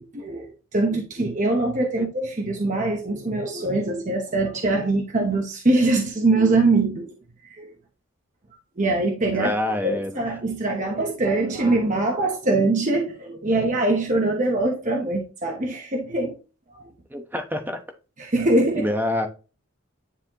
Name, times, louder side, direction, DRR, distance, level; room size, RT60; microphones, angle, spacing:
voice 1, 0.1-7.1 7.5-7.7 8.8-9.5 9.8-16.4 16.7-16.8 18.2-18.9, right 2 dB, 35° right, 0.9 m, -23 dB
voice 2, 9.3-10.2 17.1-17.8 18.8-19.3, left 1 dB, 10° right, 1.0 m, -26 dB
10.0 x 4.2 x 2.9 m
head